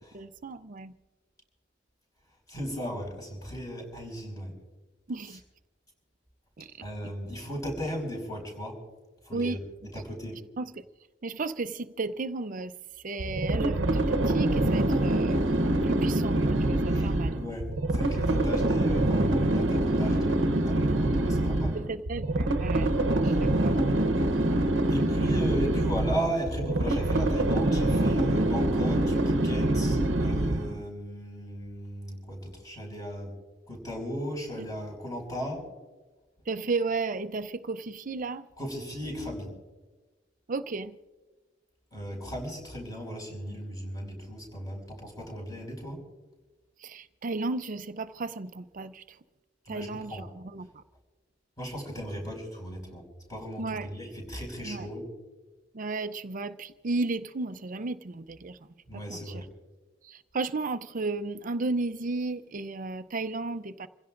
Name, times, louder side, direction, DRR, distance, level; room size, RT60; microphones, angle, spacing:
voice 1, 0.1-0.9 5.1-5.4 6.6-6.7 9.3-9.6 9.9-10.0 10.6-10.8 11.2-15.4 15.8-17.4 21.7-22.9 23.2-23.8 34.6-34.7 36.5-38.5 40.5-41.0 46.8-49.2 49.7-50.8 53.6-54.0 54.6-54.9 55.7-58.7 58.9-59.4 60.0-63.9, right 3 dB, 45° right, 0.6 m, -34 dB
voice 2, 2.5-4.6 6.8-8.8 9.2-9.6 9.9-10.4 16.9-21.8 23.2-23.4 24.9-33.3 33.7-35.6 38.6-39.5 41.9-46.0 49.7-50.3 51.6-55.0 58.9-59.5, equal, 20° left, 5.7 m, -36 dB
sound 1, 13.2-30.8, right 1 dB, 85° right, 0.9 m, -25 dB
28.5 x 16.5 x 2.5 m
head